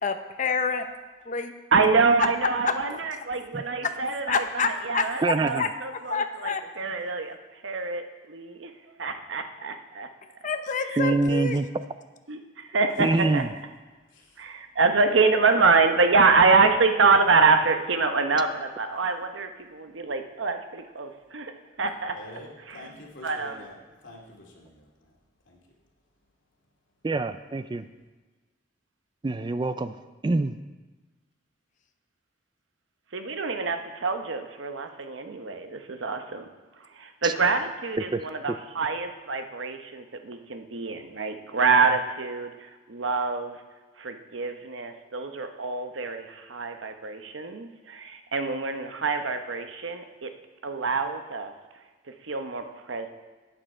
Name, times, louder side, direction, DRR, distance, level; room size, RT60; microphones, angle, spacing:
voice 1, 0.0-0.8 1.3-1.5 2.6-2.7 3.8-3.9 4.3-5.7 6.0-6.6 10.4-11.6, left 5 dB, 40° left, 7 dB, 0.7 m, -28 dB
voice 2, 1.7-8.7 9.0-10.1 10.9-11.0 12.3-13.4 14.4-21.5 21.8-22.2 22.7-23.7 33.1-36.5 36.8-43.6 44.0-50.3 50.6-51.5 52.2-53.1, right 4 dB, 80° right, 6 dB, 0.9 m, -26 dB
voice 3, 5.2-5.6 11.0-11.7 13.0-13.5 27.0-27.9 29.2-29.9 30.2-30.6 37.2-37.3 38.1-38.2, right 3 dB, 25° right, 11 dB, 0.3 m, -25 dB
voice 4, 22.1-23.8 24.0-25.1 25.5-25.6, left 1 dB, 75° left, -1 dB, 2.4 m, -46 dB
11.5 x 8.9 x 4.4 m, 1.3 s
head